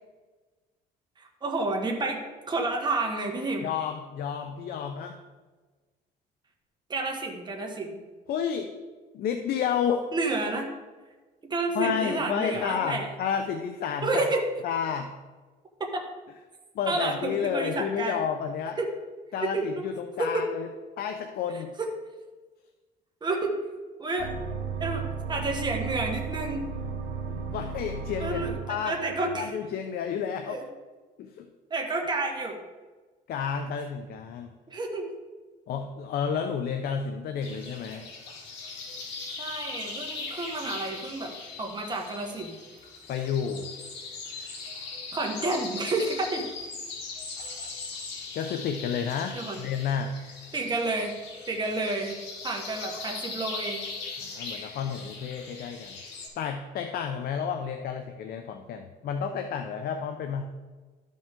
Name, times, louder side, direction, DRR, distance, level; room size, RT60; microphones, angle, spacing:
voice 1, 1.2-2.2 2.5-3.7 6.9-8.0 10.1-10.7 11.4-13.1 14.0-14.4 15.9-16.0 16.9-18.2 18.8-18.9 19.4-19.9 20.2-20.5 21.5-21.9 23.2-23.5 24.0-24.3 24.8-26.6 28.2-29.5 30.5-30.6 31.7-32.6 34.7-35.1 39.4-41.3 41.6-42.5 45.1-46.5 49.3-49.6 50.5-51.1 51.5-52.2 52.4-53.8, right 2 dB, 25° right, 1 dB, 1.5 m, -30 dB
voice 2, 3.6-5.2 8.3-8.7 9.1-10.1 11.7-15.1 16.7-18.8 19.3-20.7 21.0-21.7 27.3-28.9 29.3-30.6 31.2-31.5 33.3-34.5 35.7-38.1 43.1-43.7 48.3-50.1 54.2-56.0 56.4-60.4, left 7 dB, 65° left, 6 dB, 0.7 m, -31 dB
sound 1, 24.2-29.5, right 5 dB, 60° right, 1.1 m, -34 dB
sound 2, 37.4-56.3, left 4 dB, 85° left, 2.5 m, -39 dB
12.5 x 5.3 x 3.7 m, 1.3 s
cardioid pair, 110°, 17 cm